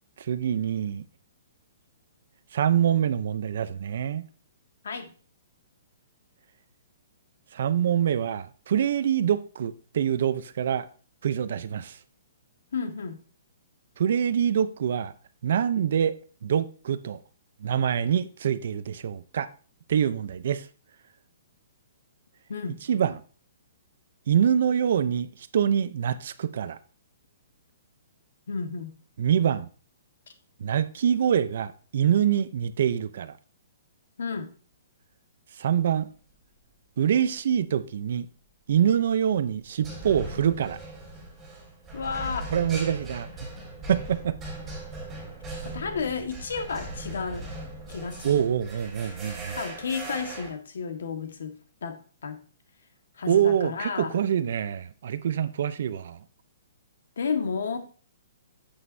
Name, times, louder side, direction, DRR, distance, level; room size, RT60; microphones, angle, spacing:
voice 1, 0.2-1.0 2.5-4.2 7.5-10.9 11.2-12.0 14.0-15.1 15.4-16.2 16.4-17.2 17.6-19.5 19.9-20.7 22.9-23.2 24.3-25.3 25.5-26.8 29.2-29.7 30.6-33.3 35.6-36.1 37.0-38.3 38.7-40.8 42.5-43.3 43.9-44.4 48.2-49.6 53.3-56.2, right 9 dB, 50° right, 0.6 m, -25 dB
voice 2, 12.7-13.2 22.5-22.8 28.5-28.9 34.2-34.5 41.9-42.5 45.6-47.5 47.9-48.5 49.5-52.4 53.2-54.2 57.2-57.8, left 5 dB, 75° left, 1.6 m, -32 dB
sound 1, 38.7-39.1 39.8-50.5, right 2 dB, 5° right, 3.3 m, -39 dB
9.4 x 8.0 x 2.7 m
hypercardioid pair, 175°, 0 cm